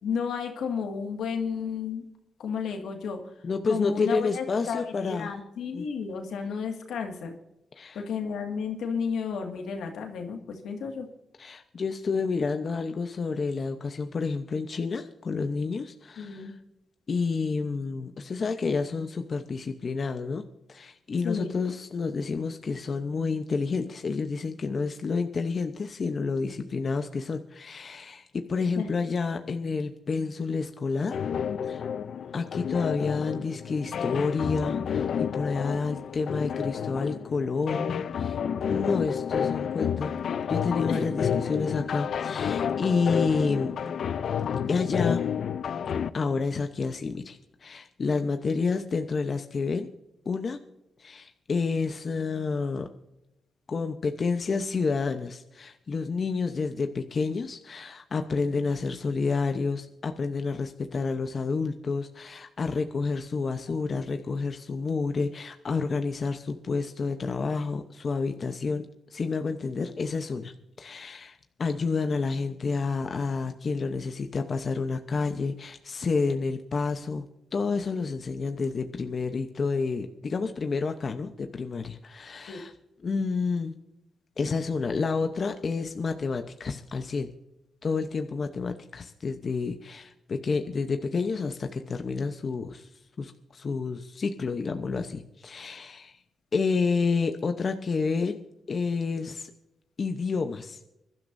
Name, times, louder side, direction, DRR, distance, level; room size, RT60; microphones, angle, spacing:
voice 1, 0.0-2.1 2.4-3.2 3.7-7.3 7.9-11.1 16.2-16.5 21.2-21.5 28.8-28.9 40.9-41.1 63.7-63.8 64.1-64.2 82.5-82.6, left 6 dB, 85° left, 3 dB, 2.0 m, -32 dB
voice 2, 3.4-5.3 5.7-5.9 7.8-8.0 11.4-16.5 17.1-31.2 31.6-31.9 32.3-38.4 38.7-40.1 40.5-43.8 44.7-45.2 46.1-49.9 50.2-50.6 51.0-52.9 53.7-77.2 77.5-82.7 83.0-83.7 84.4-87.3 87.8-92.9 93.2-96.2 96.5-98.4 98.7-99.5 100.0-100.8, left 4 dB, 50° left, 7 dB, 0.9 m, -29 dB
sound 1, 31.1-46.1, left 7 dB, 70° left, 0.5 m, -30 dB
24.5 x 12.0 x 2.7 m, 0.91 s
cardioid pair, 75°, 0 cm